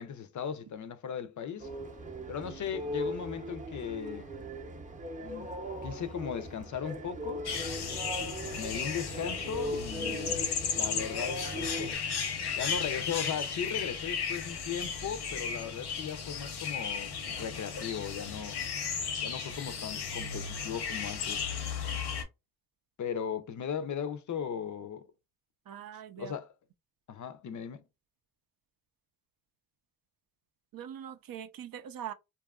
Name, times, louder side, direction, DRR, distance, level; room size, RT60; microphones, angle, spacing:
voice 1, 0.0-1.7 2.3-4.3 5.2-5.5 5.8-7.4 8.6-10.4 10.7-11.9 12.6-18.6 19.2-21.5 23.0-25.1 26.2-26.5 27.1-27.8, left 7 dB, 50° left, 0.5 m, -37 dB
sound 1, 1.6-12.0, equal, 20° right, 0.6 m, -39 dB
sound 2, 7.5-22.2, left 6 dB, 85° left, 0.8 m, -35 dB
voice 2, 10.0-10.4 25.7-26.3 30.7-32.1, right 9 dB, 60° right, 0.5 m, -42 dB
2.7 x 2.3 x 2.2 m
cardioid pair, 85°, 39 cm